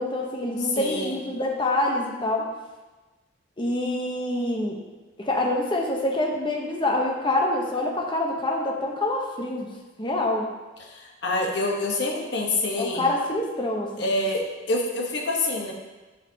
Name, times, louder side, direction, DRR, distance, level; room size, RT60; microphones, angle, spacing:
voice 1, 0.0-2.4 3.6-4.8 5.2-9.7 10.0-10.4 12.8-14.1, left 1 dB, 25° left, -1 dB, 0.9 m, -26 dB
voice 2, 0.7-1.2 10.8-13.1 14.0-15.7, left 2 dB, 60° left, -1 dB, 1.2 m, -27 dB
10.0 x 4.9 x 2.9 m, 1.2 s
head